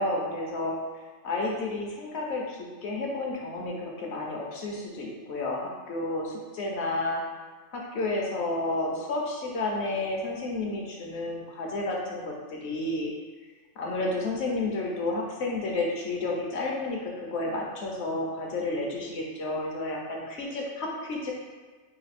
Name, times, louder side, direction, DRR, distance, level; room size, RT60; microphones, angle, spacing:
voice 1, 0.0-7.2 7.7-13.1 13.8-21.3, left 2 dB, 65° left, -1 dB, 1.0 m, -31 dB
4.0 x 2.2 x 4.1 m, 1.4 s
omnidirectional pair, 1.3 m